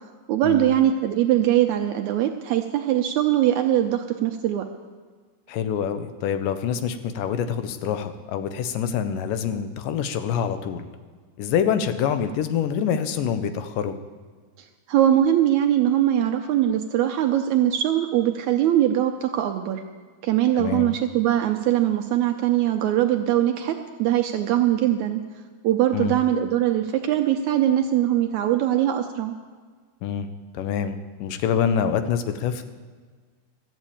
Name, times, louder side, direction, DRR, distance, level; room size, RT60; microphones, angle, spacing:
voice 1, 0.3-4.7 14.9-19.8 20.2-25.2 25.6-29.3, right 12 dB, 80° right, 5 dB, 1.7 m, -21 dB
voice 2, 5.5-10.9 11.4-13.9 20.6-20.9 25.9-26.1 30.0-30.3 30.5-32.6, left 8 dB, 80° left, 10 dB, 2.4 m, -26 dB
13.5 x 7.3 x 8.5 m, 1.5 s
omnidirectional pair, 3.8 m